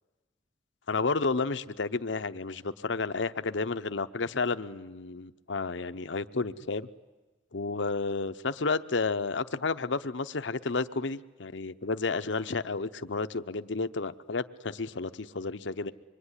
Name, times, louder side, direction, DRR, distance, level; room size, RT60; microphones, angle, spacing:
voice 1, 0.9-6.9 7.5-15.9, left 4 dB, 70° left, 11 dB, 0.8 m, -31 dB
26.0 x 22.5 x 9.9 m, 1.2 s
head